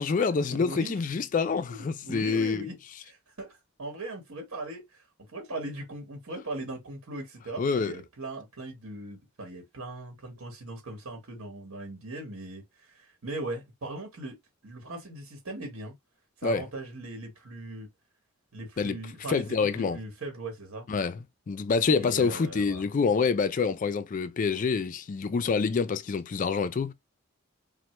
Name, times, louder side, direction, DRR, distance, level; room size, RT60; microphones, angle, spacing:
voice 1, 0.0-2.7 7.6-8.0 16.4-16.6 18.8-19.0 19.3-20.0 20.9-26.9, left 5 dB, 35° left, 0.3 m, -27 dB
voice 2, 0.5-1.0 1.7-2.8 3.0-5.0 5.3-14.4 14.6-15.9 16.4-17.9 18.5-20.9 22.0-22.8, right 2 dB, 75° right, 1.1 m, -39 dB
3.2 x 2.1 x 2.9 m
head